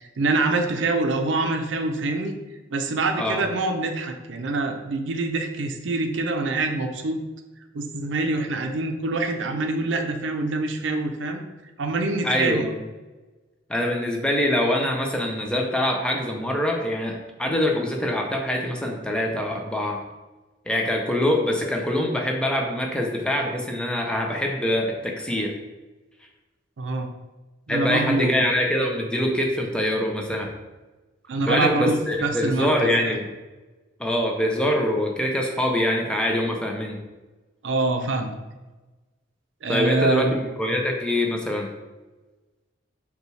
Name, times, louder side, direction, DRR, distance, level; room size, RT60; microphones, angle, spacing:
voice 1, 0.0-2.3 2.7-7.2 7.7-11.4 11.8-12.6 26.8-27.1 27.7-28.5 31.3-33.1 37.6-38.4 39.6-40.4, right 2 dB, 70° right, 5 dB, 0.5 m, -25 dB
voice 2, 12.2-12.8 13.7-20.0 20.7-25.5 27.7-30.5 31.5-33.3 34.0-37.0 39.7-41.7, left 1 dB, 5° left, 1 dB, 0.5 m, -24 dB
5.3 x 2.3 x 3.1 m, 1.2 s
head